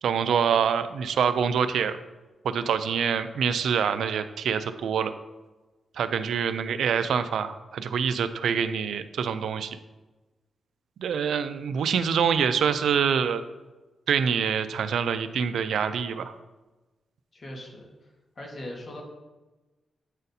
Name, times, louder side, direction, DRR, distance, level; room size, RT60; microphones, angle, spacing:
voice 1, 0.0-2.0 2.4-5.1 6.0-9.8 11.0-13.4 14.1-16.3, right 7 dB, 85° right, 11 dB, 0.3 m, -25 dB
voice 2, 17.3-17.9 18.3-19.0, left 1 dB, 45° left, -1 dB, 1.5 m, -39 dB
8.9 x 4.0 x 2.7 m, 1.1 s
cardioid pair, 100°, 0 cm